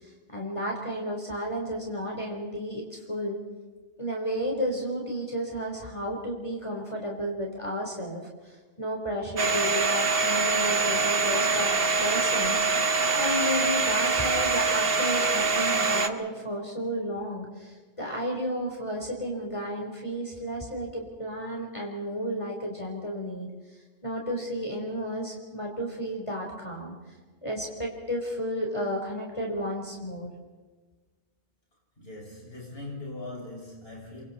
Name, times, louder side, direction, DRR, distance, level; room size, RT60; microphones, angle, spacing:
voice 1, 0.0-3.4 4.0-11.7 12.0-12.6 12.9-23.5 24.0-27.0 27.4-30.3, equal, 25° left, -1 dB, 4.0 m, -32 dB
Domestic sounds home sounds, 9.4-16.1, right 4 dB, 55° right, 1.4 m, -24 dB
voice 2, 32.0-34.2, left 2 dB, 55° left, -3 dB, 6.4 m, -40 dB
30.0 x 24.0 x 4.2 m, 1.3 s
omnidirectional pair, 1.2 m